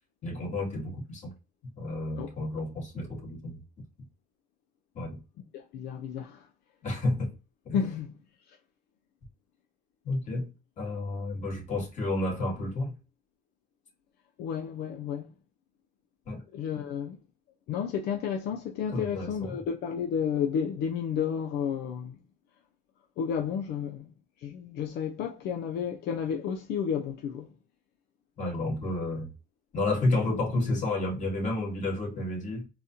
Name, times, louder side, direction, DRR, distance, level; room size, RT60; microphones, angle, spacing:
voice 1, 0.2-1.3 1.8-3.6 4.9-5.2 6.8-7.3 7.7-7.8 10.0-10.5 10.8-13.0 16.3-16.4 18.9-19.6 28.4-29.3 29.7-32.7, left 2 dB, 45° left, 2.0 m, -31 dB
voice 2, 5.5-6.5 7.7-8.1 8.5-8.6 14.4-15.3 16.5-17.2 17.7-22.2 23.2-24.1 24.4-27.5, left 7 dB, 75° left, 0.5 m, -31 dB
4.0 x 2.8 x 2.5 m
cardioid pair, 110°, 17 cm